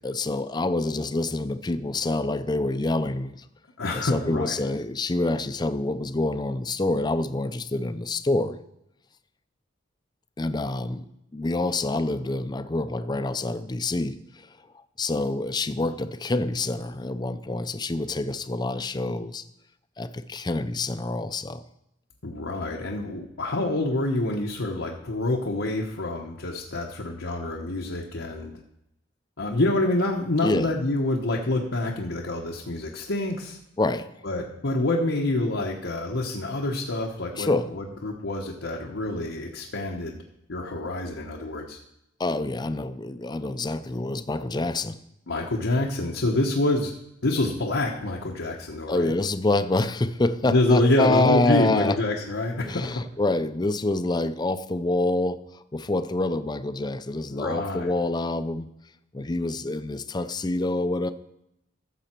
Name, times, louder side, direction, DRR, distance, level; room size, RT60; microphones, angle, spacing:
voice 1, 0.0-3.4 3.9-8.6 10.4-11.0 11.3-14.2 15.0-19.4 20.0-21.6 30.4-30.7 33.8-34.1 37.3-37.7 42.2-45.0 48.9-52.0 52.6-58.7 59.1-61.1, left 2 dB, 20° left, 12 dB, 0.5 m, -26 dB
voice 2, 3.8-4.6 22.2-28.6 29.4-33.6 34.2-40.2 40.5-41.8 45.3-46.9 47.2-49.1 50.4-53.0 57.3-57.9, left 2 dB, 90° left, -1 dB, 1.1 m, -26 dB
14.0 x 7.0 x 4.4 m, 0.83 s
head